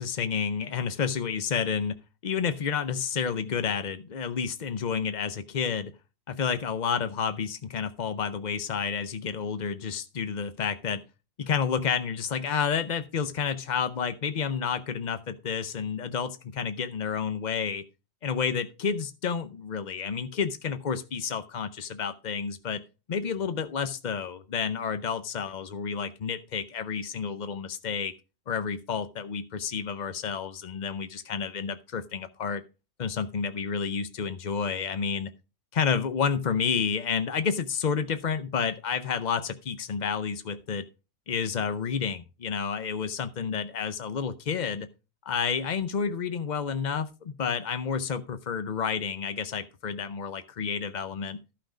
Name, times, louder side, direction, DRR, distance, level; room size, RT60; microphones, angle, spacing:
voice 1, 0.0-5.9 6.3-11.0 11.4-17.8 18.2-22.8 23.1-28.1 28.5-32.6 33.0-35.3 35.7-40.8 41.3-44.9 45.2-51.4, left 6 dB, 50° left, 11 dB, 0.5 m, -30 dB
13.5 x 5.9 x 4.9 m, 0.30 s
omnidirectional pair, 1.6 m